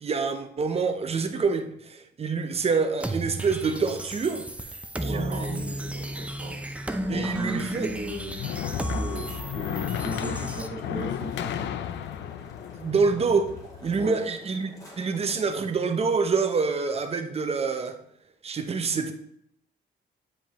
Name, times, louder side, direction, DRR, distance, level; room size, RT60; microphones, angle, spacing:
voice 1, 0.0-4.5 5.0-5.7 7.1-7.9 12.7-13.5 13.8-18.0 18.4-19.1, right 4 dB, 35° right, 7 dB, 0.8 m, -26 dB
sound 1, 3.0-10.7, right 1 dB, 5° right, 0.5 m, -34 dB
voice 2, 5.0-6.7 7.1-8.3 8.8-11.7 13.9-14.2, right 1 dB, 70° right, -3 dB, 1.9 m, -36 dB
sound 2, 7.9-14.0, left 10 dB, 85° left, 0.4 m, -34 dB
sound 3, 8.5-15.6, equal, 20° left, 2.0 m, -49 dB
8.7 x 5.1 x 3.0 m, 0.71 s
cardioid pair, 135°, 18 cm